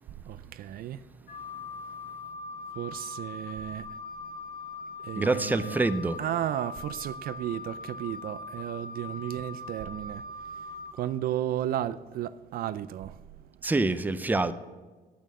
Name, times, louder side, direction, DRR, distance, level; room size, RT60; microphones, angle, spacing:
voice 1, 0.1-1.6 2.0-4.4 4.8-5.8 6.2-13.5, right 12 dB, 60° right, 0.4 m, -35 dB
Wind instrument woodwind instrument, 1.3-10.9, left 3 dB, 70° left, 4.5 m, -41 dB
voice 2, 5.2-6.2 13.6-14.5, right 3 dB, 10° right, 0.6 m, -26 dB
9.0 x 8.8 x 8.5 m
cardioid pair, 110°, 17 cm